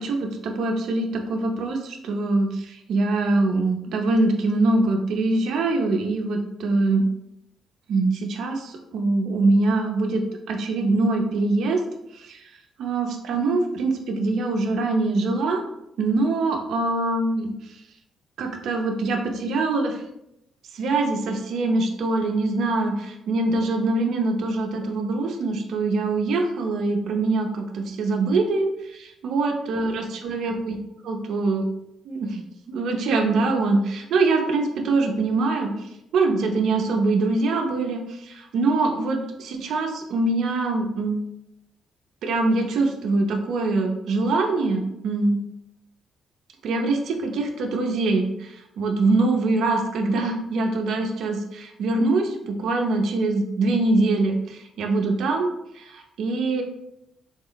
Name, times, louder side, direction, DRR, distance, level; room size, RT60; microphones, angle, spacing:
voice 1, 0.0-7.0 7.9-10.2 10.5-11.8 12.1-12.4 12.8-15.6 16.0-17.5 18.4-20.0 20.7-30.8 31.0-31.6 32.1-35.7 36.1-41.2 42.2-45.4 46.6-55.5 55.7-56.6, right 3 dB, 75° right, 3 dB, 0.6 m, -23 dB
3.6 x 2.0 x 3.9 m, 0.83 s
cardioid pair, 90°, 0 cm